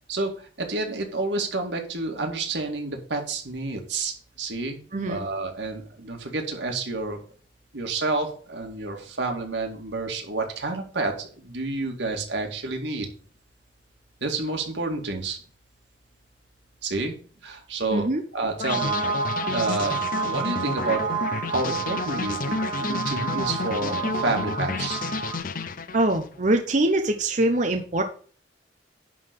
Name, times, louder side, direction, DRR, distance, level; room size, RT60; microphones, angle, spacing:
voice 1, 0.6-4.8 5.1-7.2 7.7-13.1 14.2-15.4 16.8-17.2 17.4-18.1 18.3-18.9 19.5-21.0 21.5-25.0, right 3 dB, 90° right, 3 dB, 2.2 m, -29 dB
voice 2, 17.9-18.2 25.9-28.0, right 1 dB, 45° right, 5 dB, 0.9 m, -23 dB
sound 1, 18.6-26.3, left 4 dB, 50° left, 0.7 m, -31 dB
sound 2, 18.7-25.4, right 6 dB, 30° right, 1.8 m, -30 dB
11.0 x 4.0 x 6.7 m, 0.42 s
head